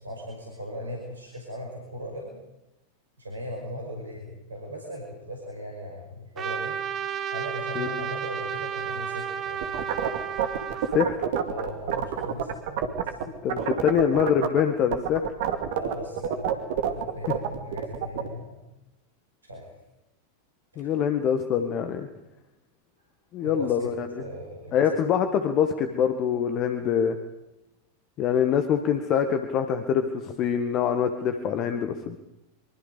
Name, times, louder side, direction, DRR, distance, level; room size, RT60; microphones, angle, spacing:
voice 1, 0.0-2.4 3.2-6.8 7.3-10.0 10.9-11.0 11.5-13.4 15.7-18.6 19.4-19.7 20.7-20.9 23.4-24.9, equal, 75° right, 0 dB, 5.2 m, -38 dB
Trumpet, 6.4-11.0, right 8 dB, 30° right, 1.8 m, -32 dB
sound 1, 9.6-13.2 13.5-14.6 14.9-18.3, right 9 dB, 50° right, 2.3 m, -27 dB
voice 2, 13.4-15.3 20.8-22.1 23.3-24.2 24.7-27.2 28.2-32.2, left 8 dB, 35° left, 7 dB, 1.6 m, -24 dB
25.0 x 24.0 x 5.4 m, 0.93 s
figure-of-eight pair, 90°, 0 cm